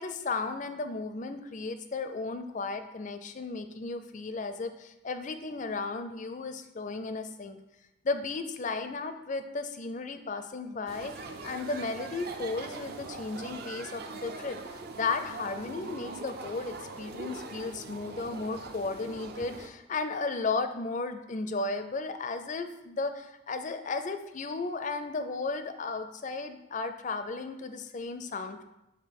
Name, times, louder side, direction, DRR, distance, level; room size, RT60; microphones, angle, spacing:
voice 1, 0.0-7.6 8.0-14.6 15.0-28.6, left 3 dB, 35° left, 9 dB, 0.4 m, -34 dB
sound 1, 10.9-19.7, right 3 dB, 50° right, 0.5 m, -42 dB
6.6 x 3.6 x 5.2 m, 0.93 s
head